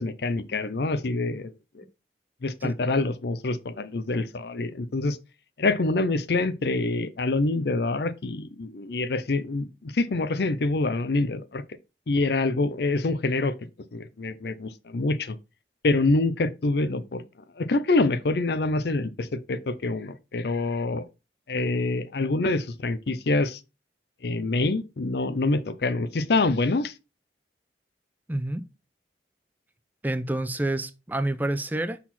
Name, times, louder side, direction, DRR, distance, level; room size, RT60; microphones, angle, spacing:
voice 1, 0.0-1.8 2.4-5.2 5.6-11.6 12.1-13.5 13.9-15.4 15.8-17.2 17.6-21.0 21.5-23.6 24.2-26.9, left 2 dB, 65° left, 0.6 m, -26 dB
voice 2, 28.3-28.6 30.0-32.0, right 1 dB, 10° right, 0.4 m, -28 dB
6.0 x 4.1 x 4.1 m
head